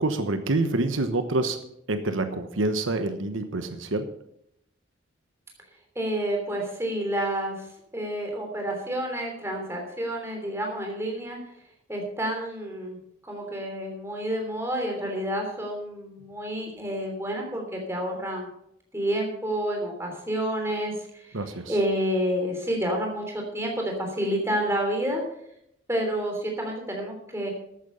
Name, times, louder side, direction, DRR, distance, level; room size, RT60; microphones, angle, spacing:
voice 1, 0.0-1.6 1.9-4.1 21.3-21.8, right 2 dB, 85° right, 8 dB, 1.1 m, -27 dB
voice 2, 5.9-7.6 7.9-11.4 11.9-13.0 13.3-18.5 18.9-21.3 21.7-25.2 25.9-27.5, right 1 dB, 15° right, 1 dB, 3.2 m, -29 dB
13.5 x 8.8 x 5.5 m, 0.75 s
head